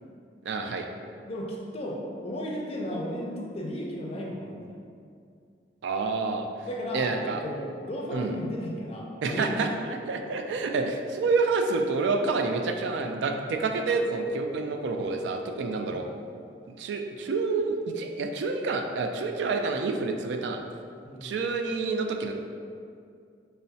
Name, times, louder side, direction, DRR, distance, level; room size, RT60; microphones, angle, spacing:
voice 1, 0.4-0.9 5.8-6.5 6.9-7.4 8.1-8.3 9.2-9.7 10.1-16.1 16.8-20.6 21.2-22.3, right 4 dB, 80° right, 4 dB, 0.3 m, -28 dB
voice 2, 1.3-4.8 6.6-9.8 15.9-16.1 21.0-21.4, equal, 35° left, -1 dB, 0.4 m, -35 dB
5.4 x 2.1 x 2.7 m, 2.3 s
head